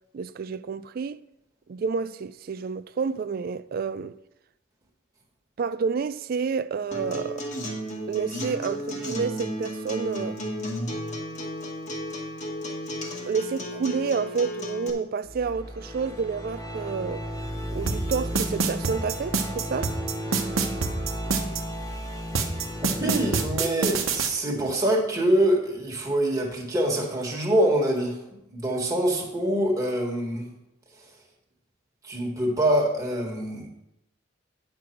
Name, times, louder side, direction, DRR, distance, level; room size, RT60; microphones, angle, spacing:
voice 1, 0.1-1.2 1.7-4.2 5.6-7.5 8.1-10.4 13.2-17.2 17.7-19.9, right 5 dB, 45° right, 0.3 m, -29 dB
Acoustic guitar, 6.9-14.9, equal, 35° left, 1.3 m, -33 dB
sound 1, 15.2-23.5, equal, 15° left, 1.4 m, -34 dB
sound 2, 17.9-21.6 22.4-24.3, right 5 dB, 85° right, 1.1 m, -25 dB
voice 2, 22.8-28.2 28.5-30.5 32.0-33.7, right 1 dB, 15° right, 1.7 m, -25 dB
9.6 x 6.6 x 4.5 m
head